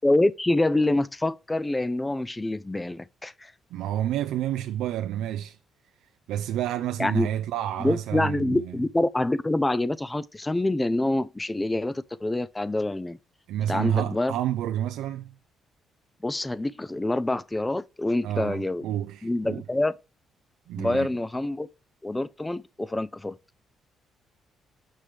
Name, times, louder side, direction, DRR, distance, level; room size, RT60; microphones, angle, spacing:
voice 1, 0.0-3.5 7.0-7.3 7.8-13.2 13.7-14.3 16.2-18.9 19.2-19.9 20.8-21.7 22.0-23.4, left 2 dB, 15° left, 0.4 m, -26 dB
voice 2, 3.7-5.6 6.3-8.8 13.5-15.3 18.2-19.6 20.7-21.1, right 11 dB, 90° right, 0.4 m, -29 dB
7.4 x 3.2 x 5.0 m
cardioid pair, 90°, 0 cm